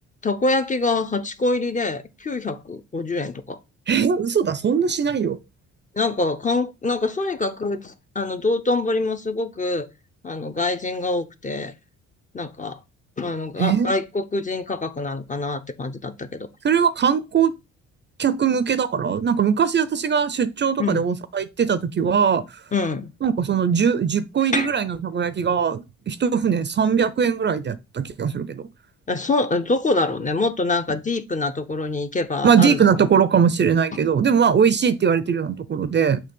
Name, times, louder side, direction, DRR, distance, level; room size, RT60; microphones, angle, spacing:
voice 1, 0.2-3.6 6.0-9.9 10.2-11.7 12.3-12.8 13.2-16.5 20.8-21.0 22.7-23.1 24.5-24.7 29.1-32.8, left 3 dB, 25° left, 0.7 m, -25 dB
voice 2, 3.9-5.4 13.6-13.9 16.6-17.5 18.2-22.4 23.2-28.6 32.4-36.2, right 7 dB, 35° right, 0.6 m, -20 dB
6.7 x 2.9 x 5.4 m
cardioid pair, 90°, 30 cm